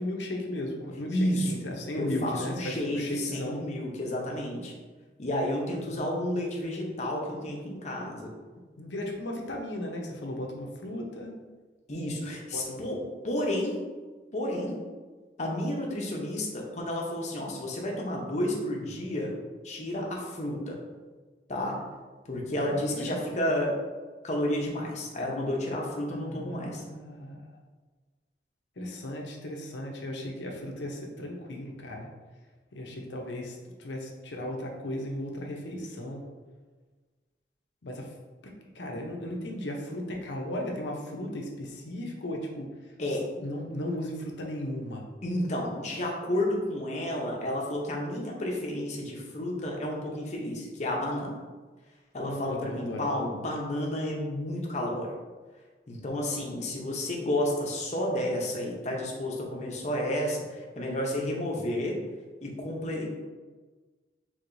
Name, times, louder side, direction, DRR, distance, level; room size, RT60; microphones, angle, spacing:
voice 1, 0.0-3.6 5.9-6.1 8.8-11.3 12.5-12.8 22.9-23.2 26.1-27.4 28.8-32.1 32.7-36.2 37.8-38.1 38.4-42.7 43.1-45.0 52.2-53.1, left 1 dB, 90° left, 1 dB, 0.8 m, -36 dB
voice 2, 1.1-1.5 1.9-4.7 5.2-8.3 11.9-13.8 14.3-14.8 15.4-19.3 19.6-20.8 21.5-21.8 22.3-23.8 24.2-26.8 43.0-43.3 45.2-51.4 52.1-55.1 55.9-61.9 62.4-63.1, left 1 dB, 40° left, -1 dB, 0.8 m, -31 dB
4.7 x 3.7 x 2.6 m, 1.4 s
head